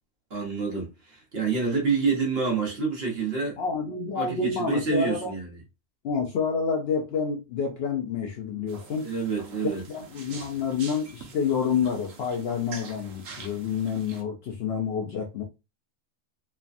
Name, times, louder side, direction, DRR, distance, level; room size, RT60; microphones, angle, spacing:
voice 1, 0.3-3.6 4.1-5.6 9.0-9.8, right 4 dB, 50° right, 1.2 m, -27 dB
voice 2, 3.6-5.3 6.0-9.1 9.6-15.4, left 6 dB, 65° left, 0.7 m, -28 dB
sound 1, 8.7-14.2, right 5 dB, 80° right, 1.1 m, -45 dB
3.2 x 2.1 x 2.5 m
omnidirectional pair, 1.4 m